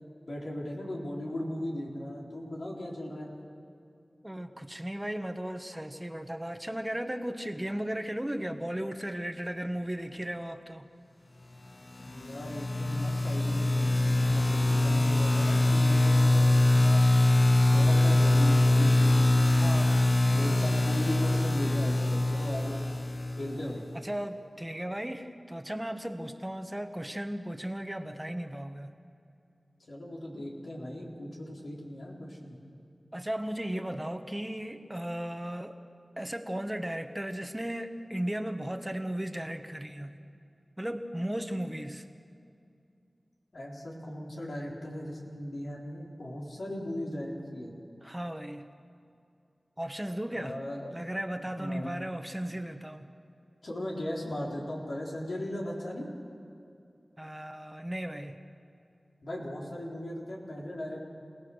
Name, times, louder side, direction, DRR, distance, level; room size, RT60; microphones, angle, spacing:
voice 1, 0.3-3.3 12.0-16.5 16.8-17.1 17.6-22.8 23.4-23.8 29.9-32.6 43.5-47.7 50.3-50.9 51.6-51.9 53.6-56.1 59.2-61.1, left 1 dB, 85° left, -3 dB, 4.1 m, -37 dB
voice 2, 4.2-10.9 19.6-20.1 23.9-28.9 33.1-35.8 36.2-40.2 40.8-42.1 48.0-48.7 49.8-50.6 50.9-53.1 57.2-58.4, right 1 dB, 15° right, 7 dB, 1.2 m, -36 dB
sound 1, 12.0-23.8, left 1 dB, 50° left, 0.6 m, -23 dB
27.5 x 18.0 x 6.4 m, 2.5 s
wide cardioid pair, 50°, 0 cm